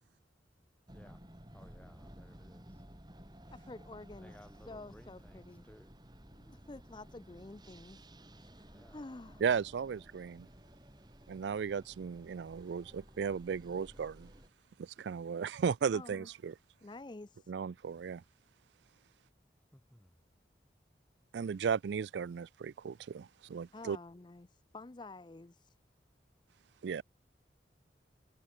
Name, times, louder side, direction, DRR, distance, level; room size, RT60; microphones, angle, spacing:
sound 1, 0.9-14.5, equal, 25° right, 4.1 m, -55 dB
voice 1, 1.5-2.7 4.1-5.9 8.7-9.0 19.7-20.1, equal, 10° left, 1.9 m, -59 dB
voice 2, 3.5-4.4 4.6-5.6 6.3-8.0 8.4-9.4 15.9-16.3 16.8-17.5 23.7-24.5 24.7-25.7, left 2 dB, 25° left, 0.5 m, -49 dB
voice 3, 9.4-10.5 11.3-14.3 14.8-16.5 17.5-18.2 21.3-24.0 26.8-27.0, right 6 dB, 85° right, 0.4 m, -35 dB
head